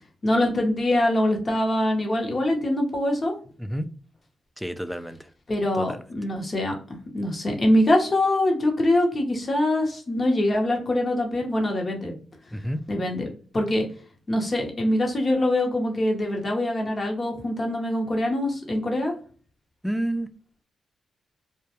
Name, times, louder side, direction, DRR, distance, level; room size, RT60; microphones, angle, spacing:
voice 1, 0.2-3.3 5.5-6.7 7.1-12.1 12.9-13.3 13.5-13.9 14.3-19.1, left 1 dB, 40° left, 1 dB, 0.8 m, -23 dB
voice 2, 4.6-5.2 5.7-6.0 12.5-12.8 19.8-20.3, equal, ahead, 10 dB, 0.3 m, -29 dB
2.2 x 2.2 x 2.8 m, 0.42 s
cardioid pair, 60°, 0 cm